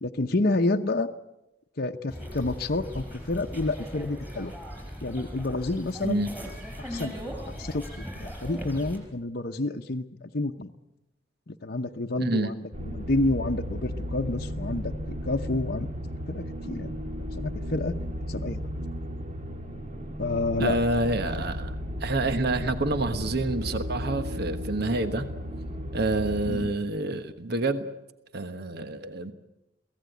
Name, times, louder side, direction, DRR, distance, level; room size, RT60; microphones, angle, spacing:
voice 1, 0.0-1.1 1.8-4.5 5.0-6.2 6.9-7.2 7.5-10.0 10.3-10.7 11.5-15.9 16.3-16.9 17.4-17.9 18.3-18.7 20.2-20.8 21.3-21.4 26.5-26.7, left 2 dB, 50° left, 3 dB, 0.9 m, -29 dB
sound 1, 2.1-9.0, equal, 10° right, 4.9 m, -38 dB
voice 2, 12.2-12.5 20.6-21.7 22.0-25.3 25.9-27.9 28.3-29.3, right 2 dB, 55° right, 9 dB, 1.3 m, -28 dB
sound 2, 12.7-26.7, equal, 35° right, 1.7 m, -34 dB
23.0 x 17.0 x 9.2 m, 0.91 s
head